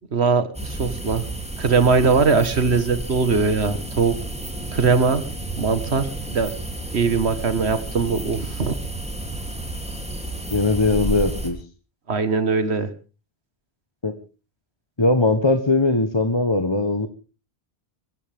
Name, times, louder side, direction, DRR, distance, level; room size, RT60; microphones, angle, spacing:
voice 1, 0.1-1.2 1.6-4.2 4.7-5.2 5.6-6.6 6.9-8.8 12.1-12.9, right 4 dB, 85° right, 11 dB, 1.9 m, -21 dB
sound 1, 0.5-11.5, right 1 dB, 5° right, 3.0 m, -31 dB
voice 2, 10.5-11.6 14.0-14.2 15.0-17.1, left 2 dB, 25° left, 8 dB, 1.2 m, -20 dB
23.0 x 15.0 x 3.6 m, 0.34 s
omnidirectional pair, 1.1 m